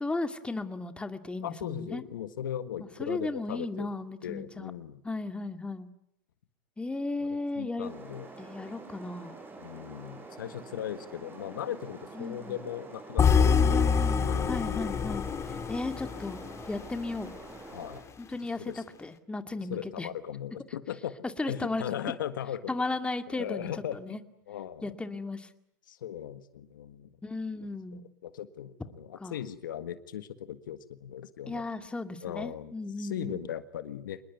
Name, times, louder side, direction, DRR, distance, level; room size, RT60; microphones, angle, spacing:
voice 1, 0.0-2.0 3.0-4.7 5.0-5.9 6.8-7.9 8.4-9.4 12.1-12.6 13.5-15.2 15.7-16.4 16.7-17.3 18.2-20.1 21.4-21.8 22.7-24.2 24.8-25.5 27.2-28.0 29.2-29.4 31.5-33.4, left 2 dB, 10° left, 9 dB, 2.2 m, -35 dB
voice 2, 1.4-3.9 4.2-5.0 7.2-8.3 9.6-13.9 14.2-14.9 17.7-18.1 18.6-18.8 19.7-21.2 21.5-22.7 23.3-24.2 24.5-24.9 25.9-27.1 27.6-31.6 32.2-32.7 33.0-34.2, left 10 dB, 80° left, 12 dB, 1.6 m, -38 dB
sound 1, 7.8-18.0, right 3 dB, 20° right, 6.4 m, -47 dB
sound 2, 13.2-17.3, left 6 dB, 25° left, 2.2 m, -26 dB
26.5 x 21.0 x 9.4 m, 0.77 s
hypercardioid pair, 100°, 11 cm